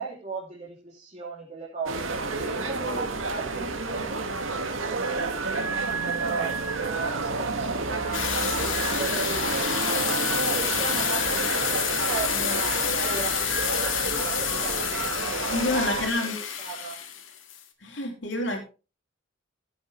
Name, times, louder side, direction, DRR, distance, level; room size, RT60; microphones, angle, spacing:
voice 1, 0.0-4.7 4.9-5.7 6.0-15.9 16.6-17.0, right 4 dB, 35° right, 2.9 m, -37 dB
sound 1, 1.9-16.1, right 3 dB, 90° right, 2.0 m, -30 dB
sound 2, 8.1-17.6, left 8 dB, 80° left, 2.1 m, -29 dB
voice 2, 15.5-16.4 17.8-18.6, left 2 dB, 65° left, 3.0 m, -28 dB
16.0 x 7.9 x 3.3 m
head